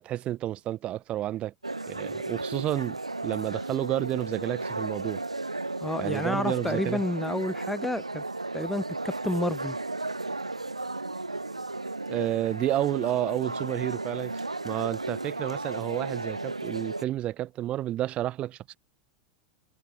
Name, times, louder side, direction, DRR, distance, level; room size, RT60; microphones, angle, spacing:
voice 1, 0.0-1.5 1.9-3.0 3.2-5.2 6.0-7.0 12.1-18.8, right 13 dB, 35° right, 2.9 m, -30 dB
sound 1, 1.6-17.1, right 2 dB, 90° right, 4.0 m, -34 dB
voice 2, 5.8-8.2 8.5-9.8, left 1 dB, 5° left, 1.7 m, -30 dB
figure-of-eight pair, 90°, 3 cm